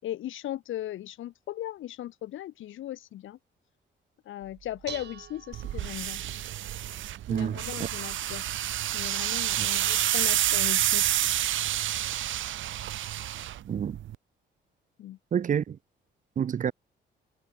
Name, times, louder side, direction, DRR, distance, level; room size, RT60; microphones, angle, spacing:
voice 1, 0.0-3.4 4.2-6.2 7.3-8.4 8.9-11.2 15.0-15.2, left 13 dB, 80° left, 5.1 m, -38 dB
Dishes pots and pans, 4.4-11.8, right 8 dB, 60° right, 5.1 m, -50 dB
sound 1, 5.5-14.2, right 12 dB, 75° right, 2.3 m, -29 dB
voice 2, 15.3-15.8 16.4-16.7, right 8 dB, 40° right, 0.7 m, -28 dB
cardioid pair, 90°, 20 cm